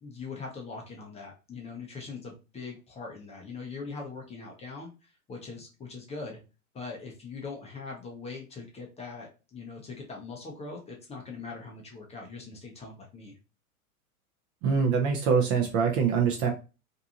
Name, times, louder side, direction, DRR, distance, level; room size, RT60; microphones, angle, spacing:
voice 1, 0.0-6.4 6.7-13.3, left 4 dB, 15° left, 0 dB, 0.6 m, -41 dB
voice 2, 14.6-16.5, right 6 dB, 30° right, 2 dB, 0.5 m, -24 dB
2.6 x 2.3 x 2.8 m, 0.30 s
hypercardioid pair, 105°, 44 cm